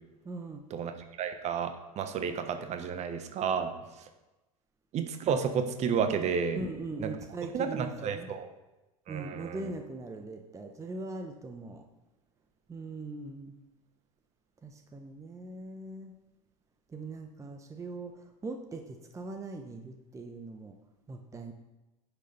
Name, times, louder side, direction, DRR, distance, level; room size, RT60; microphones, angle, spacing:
voice 1, 0.2-0.7 6.5-8.3 9.1-11.8 12.7-13.5 14.6-16.1 16.9-18.1 18.4-20.7 21.1-21.5, right 2 dB, 15° right, 5 dB, 0.9 m, -40 dB
voice 2, 1.2-3.7 4.9-6.6 7.0-7.1 7.5-8.5 9.1-9.7, right 6 dB, 35° right, 8 dB, 1.2 m, -31 dB
10.0 x 6.6 x 5.2 m, 1.1 s
figure-of-eight pair, 80°, 19 cm